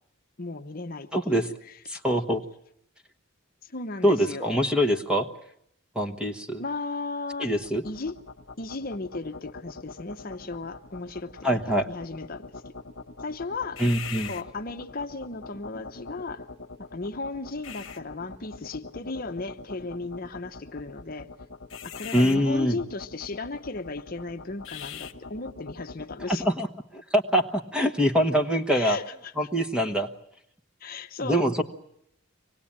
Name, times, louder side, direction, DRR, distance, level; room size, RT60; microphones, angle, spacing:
voice 1, 0.4-1.8 3.6-4.6 6.6-7.5 7.8-8.2 8.6-12.7 13.2-13.8 14.2-16.5 16.8-21.3 21.8-26.4 28.7-29.3 30.8-31.6, left 3 dB, 45° left, 0.9 m, -36 dB
voice 2, 1.1-1.5 1.9-2.4 4.0-5.3 5.9-6.6 7.4-7.8 11.4-11.9 13.8-14.3 22.1-22.8 26.3-26.7 26.9-29.0 29.4-30.1 31.2-31.6, equal, 5° right, 1.2 m, -24 dB
sound 1, 7.3-26.5, left 4 dB, 65° left, 1.1 m, -43 dB
25.0 x 19.0 x 8.7 m
head